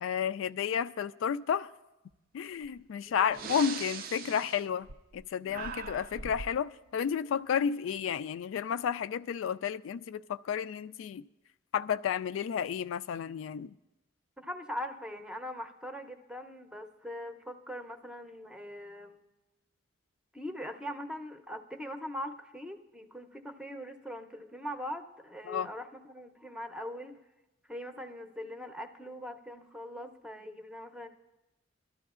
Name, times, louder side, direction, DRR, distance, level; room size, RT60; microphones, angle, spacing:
voice 1, 0.0-1.7 2.3-4.9 5.1-11.2 11.7-13.7 25.5-25.7, left 7 dB, 90° left, 0.3 m, -32 dB
Breathing, 2.6-2.8 3.3-5.2 5.5-6.6, right 5 dB, 50° right, 0.4 m, -41 dB
voice 2, 3.1-3.4 5.4-5.7 14.4-19.2 20.3-27.2 27.7-31.1, equal, 5° right, 0.6 m, -41 dB
22.5 x 13.0 x 2.4 m
head